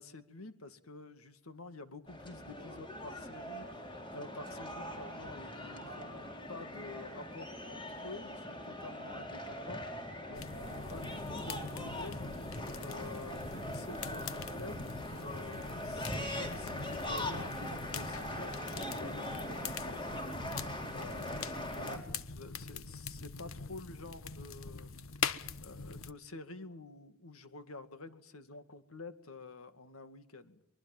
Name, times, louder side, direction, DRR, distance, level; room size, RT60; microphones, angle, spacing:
voice 1, 0.0-20.6 20.9-30.6, left 3 dB, 90° left, 10 dB, 2.3 m, -49 dB
sound 1, 2.1-22.0, left 1 dB, 25° left, 4.4 m, -41 dB
sound 2, 10.3-26.1, left 5 dB, 75° left, 1.2 m, -43 dB
24.5 x 22.5 x 7.4 m, 0.71 s
head